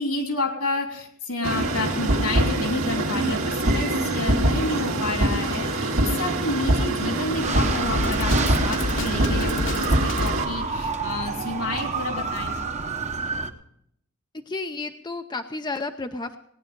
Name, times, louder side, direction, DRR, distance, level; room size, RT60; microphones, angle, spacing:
voice 1, 0.0-12.7, left 2 dB, 80° left, 3 dB, 3.3 m, -30 dB
sound 1, 1.4-10.4, right 1 dB, 70° right, 2.0 m, -24 dB
sound 2, 7.4-13.5, right 4 dB, 30° right, 1.0 m, -29 dB
Drum kit, 7.9-10.4, left 3 dB, 60° left, 1.4 m, -29 dB
voice 2, 14.5-16.4, left 3 dB, 20° left, 7 dB, 0.6 m, -32 dB
18.0 x 10.0 x 5.2 m, 0.72 s
head